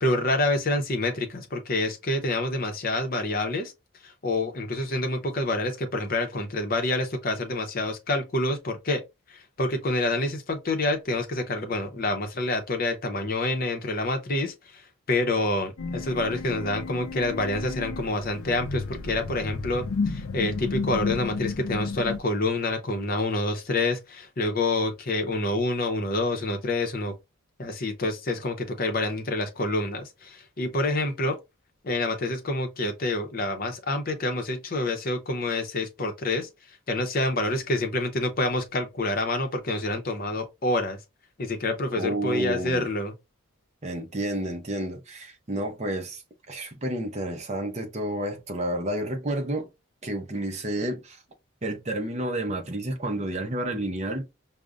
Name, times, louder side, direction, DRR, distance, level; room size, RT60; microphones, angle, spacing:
voice 1, 0.0-3.7 4.0-9.0 9.3-14.8 15.1-27.1 27.6-31.4 31.8-36.5 36.9-41.0 41.4-43.1, left 2 dB, 45° left, 0.7 m, -27 dB
sound 1, 15.8-22.2, left 4 dB, 85° left, 0.5 m, -32 dB
voice 2, 42.0-42.9 43.8-46.2 46.5-49.7 50.0-51.2 51.6-54.3, right 1 dB, 30° right, 0.6 m, -30 dB
5.0 x 2.1 x 2.4 m
head